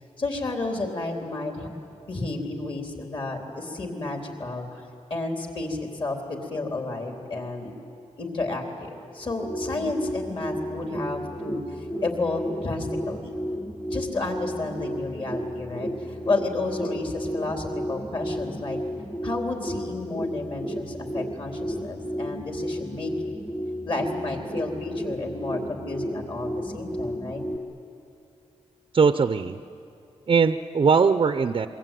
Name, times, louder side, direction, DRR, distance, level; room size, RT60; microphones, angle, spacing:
voice 1, 0.2-1.7 2.1-4.8 5.1-7.7 8.2-13.3 13.9-18.8 19.2-23.1 23.8-27.4, left 2 dB, 45° left, 2 dB, 3.8 m, -31 dB
sound 1, 9.2-27.6, equal, 5° left, 1.1 m, -33 dB
voice 2, 28.9-29.6 30.3-31.7, right 5 dB, 45° right, 10 dB, 0.6 m, -20 dB
26.5 x 23.0 x 9.2 m, 2.6 s
wide cardioid pair, 155°, 12 cm